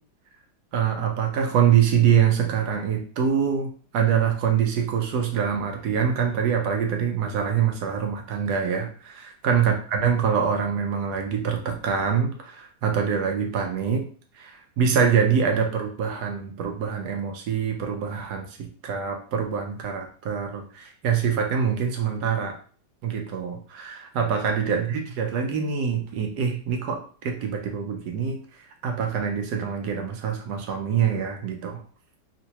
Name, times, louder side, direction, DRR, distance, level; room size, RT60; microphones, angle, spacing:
voice 1, 0.7-14.0 14.3-22.5 23.0-31.8, right 7 dB, 75° right, 3 dB, 1.0 m, -25 dB
3.6 x 2.5 x 2.8 m, 0.43 s
omnidirectional pair, 2.1 m